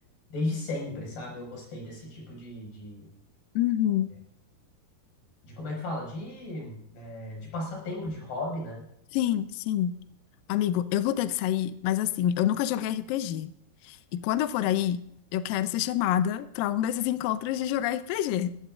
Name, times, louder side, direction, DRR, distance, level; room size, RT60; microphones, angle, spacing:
voice 1, 0.3-3.1 5.4-8.9, left 2 dB, 60° left, -1 dB, 7.5 m, -35 dB
voice 2, 3.6-4.1 9.1-9.9 10.5-13.5 13.9-15.0 15.3-18.6, left 11 dB, 85° left, 11 dB, 2.0 m, -27 dB
21.5 x 16.0 x 2.5 m, 0.75 s
omnidirectional pair, 4.9 m